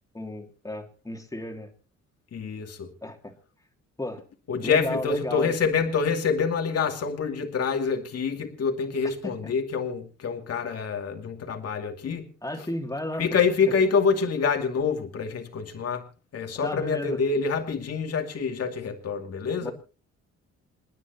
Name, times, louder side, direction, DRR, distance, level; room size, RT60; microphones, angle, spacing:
voice 1, 0.1-1.7 3.0-3.3 4.0-4.2 4.6-5.5 9.2-9.3 12.4-13.3 16.6-17.2 19.6-19.7, left 1 dB, 10° left, 4 dB, 2.8 m, -33 dB
voice 2, 2.3-2.9 4.5-12.3 12.6-12.7 13.2-16.1 16.3-19.7, left 5 dB, 55° left, 4 dB, 2.5 m, -26 dB
29.0 x 9.8 x 3.0 m, 0.33 s
cardioid pair, 90°, 30 cm